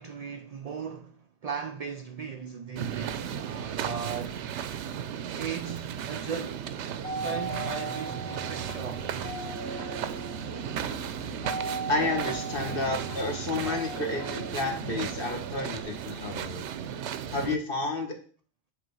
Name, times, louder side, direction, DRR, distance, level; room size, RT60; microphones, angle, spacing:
voice 1, 0.0-4.5 5.3-6.7 7.0-9.4, right 6 dB, 65° right, 0.4 m, -37 dB
sound 1, 2.8-17.6, right 9 dB, 85° right, 0.9 m, -35 dB
sound 2, 7.0-15.8, right 2 dB, 75° left, 2.5 m, -38 dB
voice 2, 11.9-16.6 17.3-18.2, left 2 dB, 55° left, 1.5 m, -31 dB
7.7 x 3.4 x 5.4 m
omnidirectional pair, 1.2 m